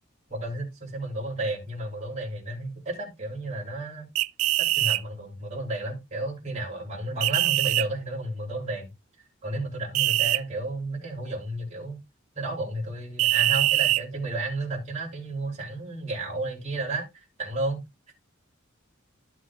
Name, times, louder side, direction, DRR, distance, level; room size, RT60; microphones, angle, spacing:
voice 1, 0.3-4.1 4.6-8.9 9.4-12.0 12.3-17.8 18.1-18.2, right 2 dB, 35° right, -2 dB, 2.9 m, -32 dB
sound 1, 4.2-5.0 7.2-7.9 9.9-10.4 13.2-14.0, right 16 dB, 80° right, 0.3 m, -23 dB
12.0 x 6.1 x 2.4 m, 0.21 s
head